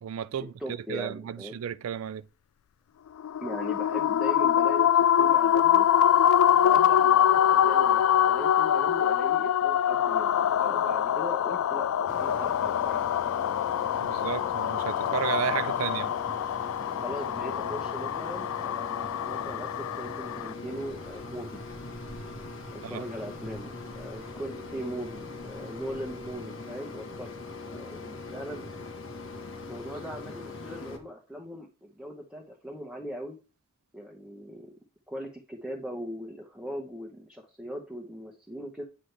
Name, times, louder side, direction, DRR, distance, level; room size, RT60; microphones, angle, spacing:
voice 1, 0.0-2.2 13.9-16.1 22.8-23.0, right 9 dB, 90° right, 0.4 m, -33 dB
voice 2, 0.6-1.6 3.4-5.9 6.6-13.0 16.9-21.6 22.7-27.3 27.7-28.7 29.7-33.4 33.9-34.7 35.1-38.8, equal, 5° right, 1.1 m, -40 dB
sound 1, 3.2-20.5, left 10 dB, 85° left, 0.3 m, -24 dB
Mechanisms, 12.1-31.0, left 3 dB, 65° left, 1.5 m, -41 dB
9.3 x 6.2 x 3.4 m
head